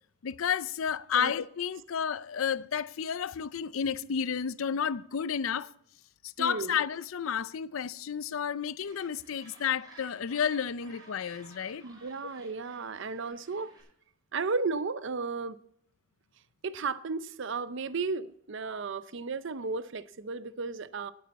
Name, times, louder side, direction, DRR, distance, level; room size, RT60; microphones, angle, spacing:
voice 1, 0.2-5.7 6.2-11.8, left 7 dB, 75° left, 0.5 m, -31 dB
voice 2, 6.4-6.8 11.8-13.7 14.3-15.6 16.6-21.1, right 4 dB, 60° right, 0.6 m, -34 dB
Gull seagull, 8.8-13.8, right 2 dB, 20° right, 5.6 m, -55 dB
19.0 x 8.7 x 4.2 m
head